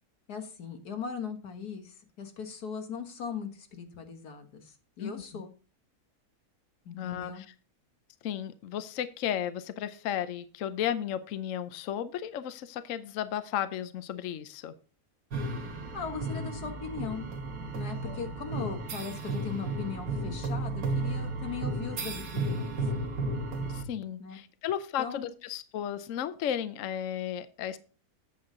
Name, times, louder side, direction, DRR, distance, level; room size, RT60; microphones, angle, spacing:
voice 1, 0.3-5.5 6.9-7.4 15.9-17.3 17.7-22.8 24.2-24.4 25.0-25.3, left 6 dB, 85° left, 6 dB, 1.9 m, -39 dB
voice 2, 5.0-5.4 6.9-7.5 8.2-14.7 18.1-18.2 23.7-27.8, left 10 dB, 65° left, 13 dB, 0.9 m, -34 dB
sound 1, 15.3-23.8, right 2 dB, 70° right, 1.7 m, -33 dB
8.7 x 7.5 x 3.8 m, 0.36 s
omnidirectional pair, 1.6 m